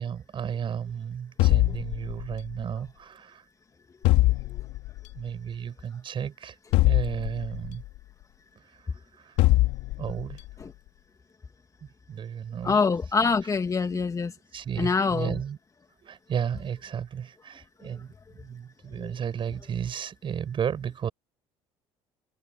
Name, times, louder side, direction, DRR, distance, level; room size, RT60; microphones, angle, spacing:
voice 1, 0.0-3.4 5.1-6.6 6.8-7.8 8.6-9.4 10.0-10.4 12.1-12.8 13.9-14.0 14.5-15.6 16.0-21.1, right 8 dB, 45° right, 7.9 m, -33 dB
sound 1, 1.4-2.5 4.0-5.0 6.7-7.8 9.4-10.4, left 18 dB, 75° left, 2.9 m, -23 dB
voice 2, 12.6-14.3 14.8-15.4 19.0-19.1, left 4 dB, 25° left, 2.5 m, -25 dB
supercardioid pair, 85°, 12 cm